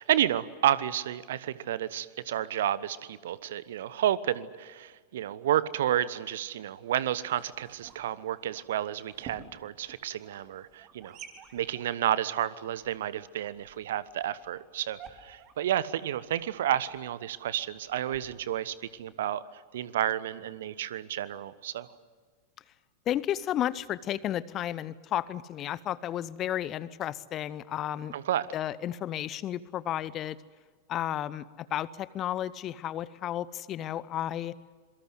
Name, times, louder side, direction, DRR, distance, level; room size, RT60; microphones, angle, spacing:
voice 1, 0.0-11.2 11.5-21.9 28.1-28.5, right 11 dB, 60° right, 18 dB, 1.1 m, -31 dB
sound 1, 6.7-19.1, right 7 dB, 35° right, 3.6 m, -53 dB
voice 2, 23.1-28.1 28.5-30.4 30.9-34.5, left 11 dB, 30° left, 20 dB, 0.9 m, -32 dB
27.0 x 23.5 x 8.0 m, 1.5 s
figure-of-eight pair, 90°, 0 cm